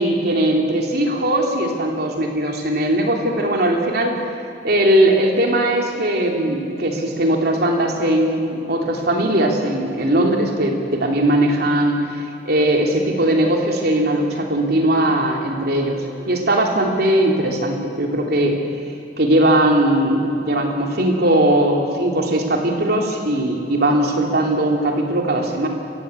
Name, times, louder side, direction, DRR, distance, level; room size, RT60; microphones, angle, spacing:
voice 1, 0.0-4.2 4.6-16.0 16.3-18.5 19.2-25.7, right 1 dB, 60° right, 1 dB, 3.2 m, -19 dB
28.0 x 15.5 x 8.4 m, 2.8 s
head